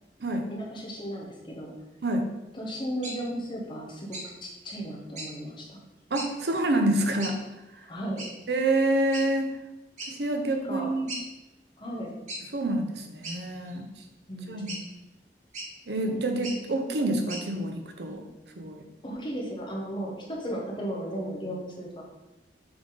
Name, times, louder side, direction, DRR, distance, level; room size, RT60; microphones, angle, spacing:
voice 1, 0.5-1.8 2.5-5.8 7.9-8.3 10.7-10.9 11.8-12.2 14.3-14.8 19.0-22.0, equal, 25° left, -2 dB, 1.1 m, -35 dB
sound 1, 3.0-3.2 4.1-4.3 5.1-5.3 6.1-6.3 7.2-7.4 8.2-8.3 9.1-9.3 10.0-10.1 10.5-10.6 11.1-11.2 12.3-12.4 13.2-13.8 14.7-14.8 15.5-15.7 16.3-16.6 17.3-17.4, right 1 dB, 45° right, 1.6 m, -37 dB
voice 2, 6.1-7.4 7.7-7.9 8.5-9.5 10.1-11.1 12.5-13.9 14.5-14.7 15.9-18.2 18.6-18.8, right 1 dB, 75° right, 4 dB, 0.7 m, -27 dB
6.9 x 3.6 x 3.9 m, 0.97 s
head